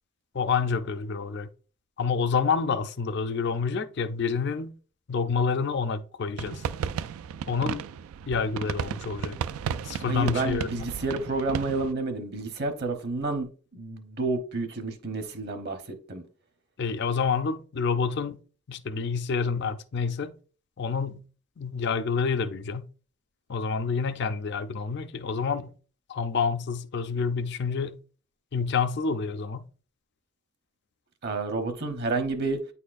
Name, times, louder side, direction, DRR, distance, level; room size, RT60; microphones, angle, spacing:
voice 1, 0.3-1.5 2.0-4.7 5.1-6.6 7.5-7.8 8.3-9.4 9.8-10.9 16.8-18.4 18.7-20.3 20.8-21.2 21.6-22.9 23.5-25.7 26.1-28.0 28.5-29.7, left 5 dB, 55° left, 0.4 m, -28 dB
sound 1, 6.4-11.9, right 7 dB, 85° right, 0.3 m, -34 dB
voice 2, 10.1-13.5 13.7-16.2 31.2-32.6, right 3 dB, 50° right, 0.9 m, -30 dB
9.0 x 4.2 x 2.5 m
head